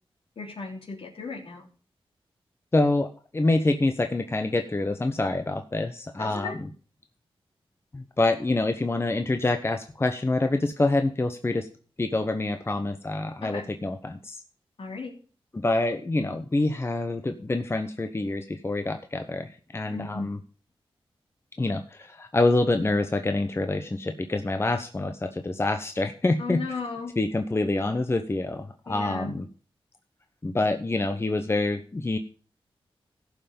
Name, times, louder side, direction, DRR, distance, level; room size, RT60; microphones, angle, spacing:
voice 1, 0.4-1.7 6.2-6.6 13.4-13.7 14.8-15.1 19.9-20.3 26.4-27.1 28.9-29.3, left 4 dB, 65° left, 0 dB, 3.2 m, -35 dB
voice 2, 2.7-6.7 7.9-11.7 12.0-14.4 15.5-20.4 21.6-26.7 27.2-29.4 30.4-32.2, left 2 dB, 25° left, 7 dB, 0.9 m, -26 dB
15.5 x 5.7 x 5.3 m, 0.40 s
cardioid pair, 75°, 10 cm